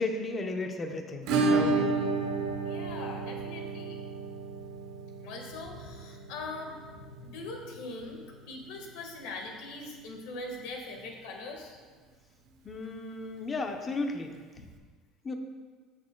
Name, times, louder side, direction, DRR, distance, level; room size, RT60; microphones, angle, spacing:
voice 1, 0.0-1.9 12.6-14.4 15.2-15.3, left 3 dB, 20° left, 4 dB, 0.7 m, -34 dB
Acoustic guitar / Strum, 1.3-9.9 10.1-10.2 10.5-10.6 11.0-11.1 13.1-13.2 14.4-14.5, right 3 dB, 65° right, 0.9 m, -32 dB
voice 2, 2.6-4.0 5.2-11.8 14.6-14.7, left 2 dB, 80° left, 2 dB, 1.5 m, -41 dB
15.0 x 6.3 x 2.2 m, 1.5 s
cardioid pair, 155°, 0 cm